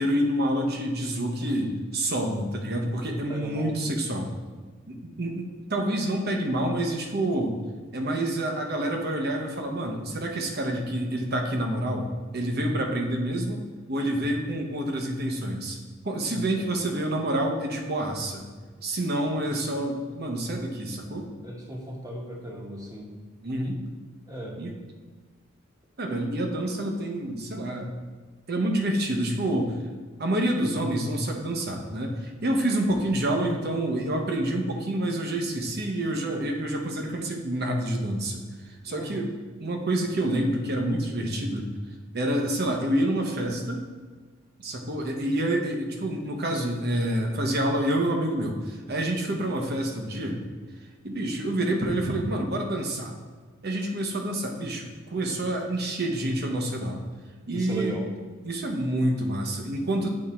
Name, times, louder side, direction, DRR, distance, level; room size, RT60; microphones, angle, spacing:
voice 1, 0.0-4.3 4.9-7.6 7.9-13.6 13.9-15.8 16.0-18.5 18.8-21.3 23.4-23.8 24.6-24.7 26.0-28.0 28.5-29.7 30.2-39.3 39.6-41.7 42.1-43.9 44.6-50.4 51.0-53.1 53.6-57.0 57.5-58.0 58.4-60.1, right 1 dB, 55° right, 2 dB, 1.0 m, -28 dB
voice 2, 3.3-3.8 16.3-16.8 21.4-23.1 24.3-24.6 33.1-33.2 38.9-39.3 57.5-58.1, right 1 dB, 20° right, -1 dB, 1.2 m, -36 dB
8.6 x 3.7 x 4.3 m, 1.4 s
head